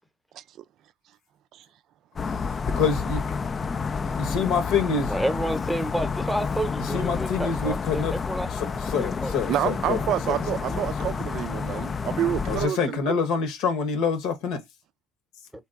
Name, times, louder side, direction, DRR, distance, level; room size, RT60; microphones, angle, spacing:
sound 1, 2.2-12.7, left 5 dB, 35° left, 0.3 m, -30 dB
voice 1, 2.6-3.2 4.0-5.1 6.9-8.1 8.9-10.4 10.8-10.9 12.5-14.6, left 5 dB, 80° left, 1.0 m, -26 dB
voice 2, 5.1-9.3, right 1 dB, ahead, 0.8 m, -30 dB
voice 3, 9.5-13.0, right 11 dB, 65° right, 0.4 m, -28 dB
2.8 x 2.3 x 3.6 m
supercardioid pair, 80°, 0 cm